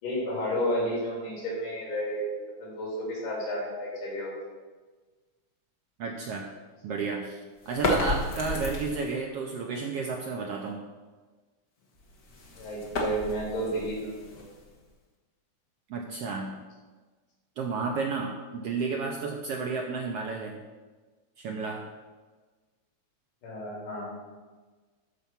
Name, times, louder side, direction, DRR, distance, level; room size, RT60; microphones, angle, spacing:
voice 1, 0.0-2.3 2.6-4.4 12.6-14.4 23.4-24.2, equal, 90° left, -4 dB, 4.8 m, -32 dB
voice 2, 6.0-6.5 6.8-10.8 15.9-16.6 17.6-20.6 21.4-21.9, right 4 dB, 75° right, 1 dB, 1.4 m, -32 dB
sound 1, 7.6-9.2 11.9-14.9, left 1 dB, 45° left, 1.2 m, -32 dB
13.0 x 4.5 x 5.7 m, 1.3 s
omnidirectional pair, 3.6 m